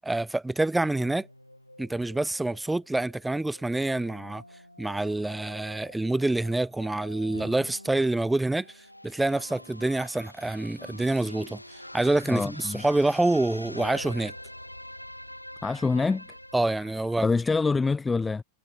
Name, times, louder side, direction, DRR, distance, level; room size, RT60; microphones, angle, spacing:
voice 1, 0.0-1.3 1.8-4.4 4.8-8.7 9.0-11.6 11.9-14.3 16.5-17.3, right 2 dB, 5° right, 1.9 m, -26 dB
sound 1, 0.8-17.9, left 1 dB, 90° left, 3.0 m, -46 dB
voice 2, 12.3-12.8 15.6-16.3 17.2-18.4, left 4 dB, 10° left, 1.4 m, -25 dB
figure-of-eight pair, 90°, 0 cm